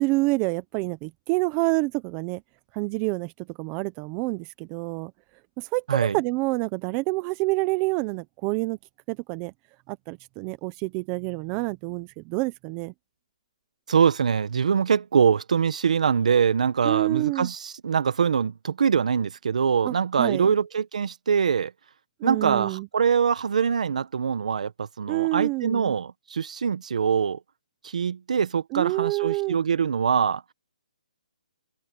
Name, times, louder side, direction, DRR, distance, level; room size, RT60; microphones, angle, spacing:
voice 1, 0.0-2.4 2.7-3.3 3.6-5.1 5.6-8.8 9.1-9.5 9.9-12.9 16.8-17.5 19.8-20.5 22.2-22.9 25.1-25.9 28.7-29.6, right 24 dB, 20° right, 0.8 m, -27 dB
voice 2, 13.9-21.7 22.2-27.4 27.8-30.4, right 6 dB, 65° right, 1.6 m, -23 dB
open air
hypercardioid pair, 165°, 4 cm